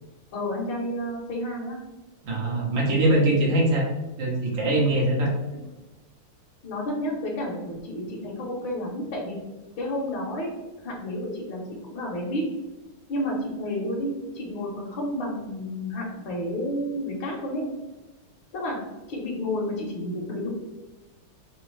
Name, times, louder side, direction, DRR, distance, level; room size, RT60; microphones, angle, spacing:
voice 1, 0.3-1.8 6.6-9.4 9.8-10.5 10.8-11.6 11.9-12.4 13.1-17.7 18.5-18.8 19.1-20.5, left 1 dB, 70° left, -3 dB, 1.6 m, -30 dB
voice 2, 2.2-3.9 4.2-5.3, right 1 dB, 70° right, -2 dB, 1.7 m, -22 dB
4.3 x 3.6 x 3.1 m, 1.1 s
omnidirectional pair, 2.2 m